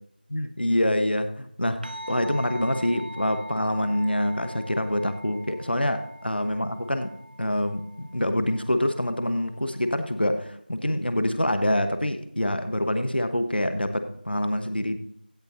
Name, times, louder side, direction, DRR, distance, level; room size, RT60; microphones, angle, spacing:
voice 1, 0.3-7.1 7.4-15.0, left 1 dB, 80° left, 8 dB, 1.1 m, -26 dB
sound 1, 1.8-10.5, equal, 65° right, 0.9 m, -43 dB
16.5 x 6.7 x 2.7 m, 0.71 s
figure-of-eight pair, 180°, 5 cm